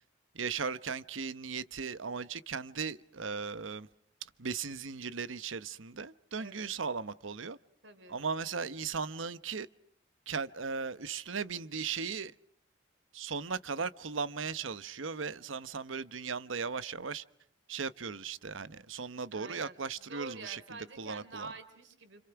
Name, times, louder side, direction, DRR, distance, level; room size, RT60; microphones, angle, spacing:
voice 1, 0.3-3.9 4.2-7.6 8.1-9.7 10.3-12.3 13.1-17.2 17.7-20.6 21.0-21.5, right 5 dB, 90° right, 1.0 m, -37 dB
voice 2, 6.4-6.7 7.8-8.2 19.3-22.2, right 3 dB, 70° right, 3.7 m, -47 dB
29.5 x 27.0 x 5.9 m
head